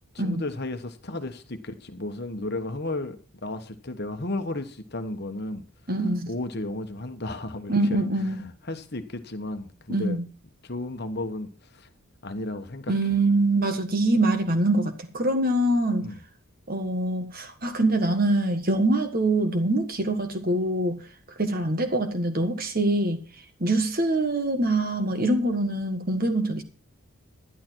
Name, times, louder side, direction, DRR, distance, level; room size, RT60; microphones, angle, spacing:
voice 1, 0.1-3.2 3.4-5.6 6.3-8.0 8.7-10.2 10.6-11.9 12.2-12.9 16.0-16.2, left 2 dB, 50° left, 1.2 m, -33 dB
voice 2, 5.9-6.3 7.7-8.4 9.9-10.3 12.9-16.0 16.7-21.0 21.4-23.2 23.6-26.6, right 2 dB, 40° right, 1.6 m, -24 dB
11.5 x 11.0 x 4.6 m
head